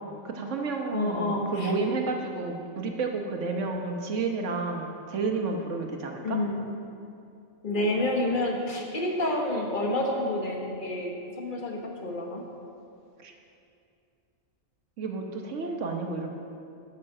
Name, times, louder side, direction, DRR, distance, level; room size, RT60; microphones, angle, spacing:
voice 1, 0.2-6.4 13.2-13.3 15.0-16.3, right 3 dB, 75° right, 3 dB, 1.4 m, -31 dB
voice 2, 0.9-1.7 6.2-6.6 7.6-12.4, left 1 dB, 45° left, 1 dB, 1.3 m, -29 dB
8.9 x 6.6 x 6.6 m, 2.6 s
omnidirectional pair, 1.3 m